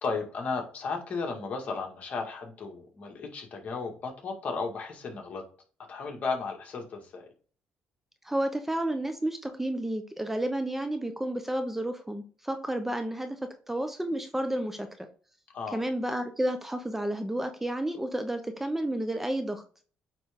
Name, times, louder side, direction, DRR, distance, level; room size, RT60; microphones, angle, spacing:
voice 1, 0.0-5.4 5.9-7.3 15.5-15.8, left 4 dB, 50° left, 2 dB, 2.1 m, -34 dB
voice 2, 8.2-14.9 15.7-19.6, right 1 dB, 10° right, 7 dB, 0.9 m, -31 dB
8.7 x 3.4 x 3.7 m, 0.41 s
supercardioid pair, 80°, 3 cm